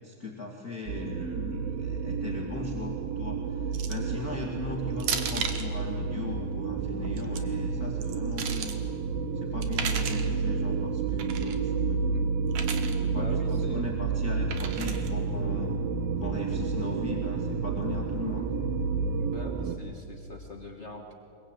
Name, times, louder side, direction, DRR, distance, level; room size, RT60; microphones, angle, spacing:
voice 1, 0.0-8.8 9.3-12.0 12.9-15.7 16.2-18.5, left 4 dB, 30° left, -1 dB, 2.3 m, -38 dB
sound 1, 0.9-19.8, right 5 dB, 90° right, 2.9 m, -30 dB
sound 2, 3.7-4.1 5.0-5.7 7.0-7.4 8.0-8.8 9.6-10.3 11.2-11.6 12.5-13.0 14.5-15.1, right 7 dB, 60° right, 2.6 m, -34 dB
voice 2, 13.1-13.9 19.1-21.1, left 2 dB, 80° left, 2 dB, 0.6 m, -43 dB
24.5 x 22.5 x 9.0 m, 2.8 s
omnidirectional pair, 4.0 m